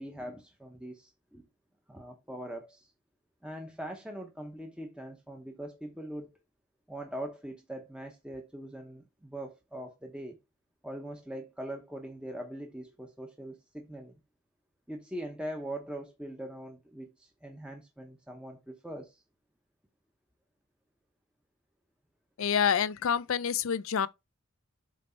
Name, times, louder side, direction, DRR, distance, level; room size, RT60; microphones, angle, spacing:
voice 1, 0.0-1.4 1.9-2.9 3.4-6.4 6.9-10.4 10.8-14.1 14.9-19.2, right 1 dB, 5° right, 0.8 m, -42 dB
voice 2, 22.4-24.1, left 7 dB, 70° left, 0.5 m, -27 dB
7.5 x 3.2 x 4.3 m
head